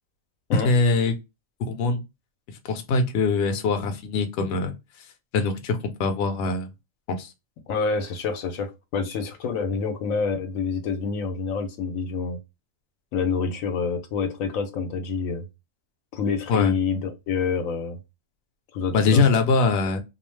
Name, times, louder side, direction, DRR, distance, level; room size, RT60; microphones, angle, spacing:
voice 1, 0.6-1.1 1.6-2.0 2.7-4.7 5.3-6.7 7.1-7.3 16.5-16.7 18.9-20.0, left 4 dB, 60° left, 0.8 m, -22 dB
voice 2, 7.7-12.4 13.1-15.5 16.1-18.0 18.7-19.2, left 5 dB, 80° left, 1.0 m, -27 dB
2.4 x 2.3 x 3.1 m
omnidirectional pair, 1.4 m